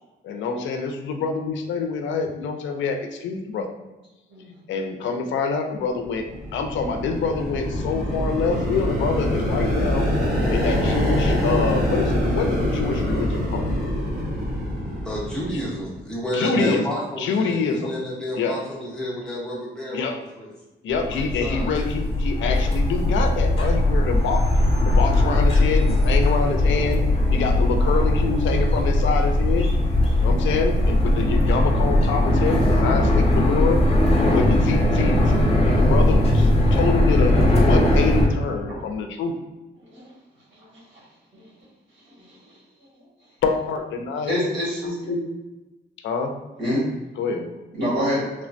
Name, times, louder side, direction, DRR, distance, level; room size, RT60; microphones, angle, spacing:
voice 1, 0.2-3.7 4.7-6.3 6.5-10.1 10.5-13.7 15.5-15.6 16.3-16.8 17.2-17.9 18.4-18.6 19.9-20.2 20.8-24.4 24.9-27.0 27.3-29.7 30.2-33.8 34.3-35.3 35.8-39.3 43.4-44.4 46.0-46.3 47.2-47.5, left 5 dB, 85° left, 5 dB, 0.4 m, -26 dB
sound 1, 6.1-15.9, left 1 dB, 55° right, 1.3 m, -24 dB
voice 2, 15.0-20.5 21.1-21.7, left 1 dB, 5° left, -6 dB, 0.9 m, -30 dB
sound 2, 20.9-38.3, left 1 dB, 30° left, 0.7 m, -19 dB
voice 3, 44.3-45.2 46.6-46.8 47.7-48.2, equal, 80° right, -6 dB, 1.3 m, -25 dB
3.2 x 2.1 x 2.5 m, 1.1 s
cardioid pair, 120°, 19 cm